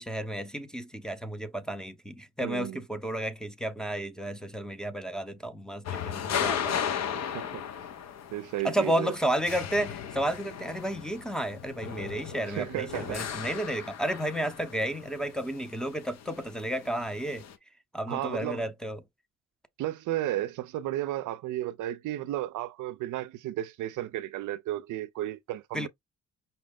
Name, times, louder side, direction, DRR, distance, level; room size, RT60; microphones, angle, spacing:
voice 1, 0.0-6.8 8.6-17.4 17.9-19.0 25.7-25.9, right 1 dB, ahead, 0.7 m, -32 dB
voice 2, 2.4-2.8 7.2-7.6 8.3-9.1 12.5-13.2 18.1-18.7 19.8-25.9, right 14 dB, 80° right, 0.5 m, -33 dB
sound 1, 5.8-17.5, left 8 dB, 60° left, 0.8 m, -36 dB
5.5 x 2.0 x 3.6 m
cardioid pair, 90°, 30 cm